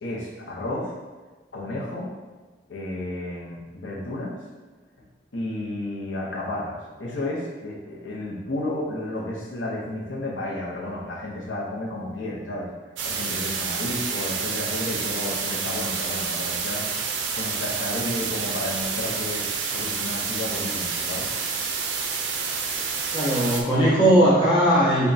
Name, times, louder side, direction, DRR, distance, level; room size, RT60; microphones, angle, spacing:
voice 1, 0.0-0.9 1.5-2.1 2.7-4.4 5.3-12.7 13.0-16.9 17.3-21.3, left 1 dB, 80° left, -4 dB, 0.7 m, -32 dB
sound 1, 13.0-23.6, right 5 dB, 80° right, 0.4 m, -28 dB
voice 2, 23.1-25.1, right 1 dB, 25° left, -7 dB, 1.0 m, -18 dB
3.5 x 2.2 x 3.9 m, 1.3 s
head